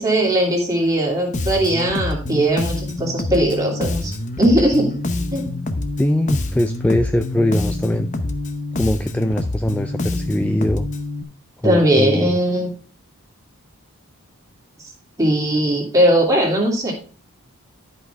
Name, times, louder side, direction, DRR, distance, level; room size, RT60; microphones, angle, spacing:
voice 1, 0.0-4.1 4.4-4.9 5.3-5.5 11.6-12.7 15.2-16.9, right 1 dB, 15° right, -2 dB, 2.8 m, -19 dB
Bass guitar, 1.3-11.2, left 2 dB, 35° left, 0.8 m, -26 dB
voice 2, 6.0-8.1 8.7-10.9 11.6-12.4, left 1 dB, 5° left, 9 dB, 0.3 m, -21 dB
12.5 x 5.4 x 3.5 m, 0.39 s
head